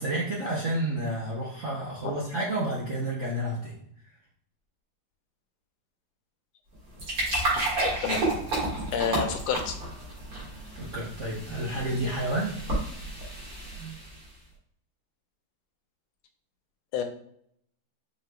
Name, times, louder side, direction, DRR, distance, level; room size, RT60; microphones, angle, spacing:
voice 1, 0.0-3.8 10.7-12.6, right 1 dB, 65° right, -5 dB, 0.7 m, -30 dB
sound 1, 6.7-14.3, right 2 dB, 50° right, 2.2 m, -31 dB
voice 2, 7.6-8.2 8.9-9.7 16.9-17.0, left 7 dB, 90° left, 6 dB, 1.5 m, -29 dB
5.1 x 3.1 x 2.2 m, 0.69 s
omnidirectional pair, 2.3 m